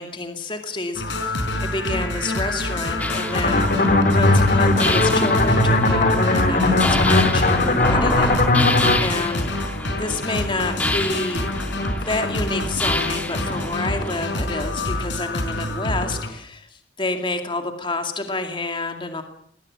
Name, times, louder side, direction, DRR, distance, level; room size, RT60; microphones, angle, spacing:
voice 1, 0.0-8.3 9.0-9.5 10.0-11.5 12.0-19.2, left 2 dB, 30° left, 6 dB, 2.3 m, -28 dB
sound 1, 0.9-16.3, left 1 dB, 80° left, 4.7 m, -27 dB
sound 2, 3.0-14.3, left 1 dB, 10° left, 1.9 m, -28 dB
sound 3, 3.3-9.0, left 2 dB, 50° left, 3.4 m, -18 dB
20.5 x 18.5 x 8.7 m, 0.67 s
head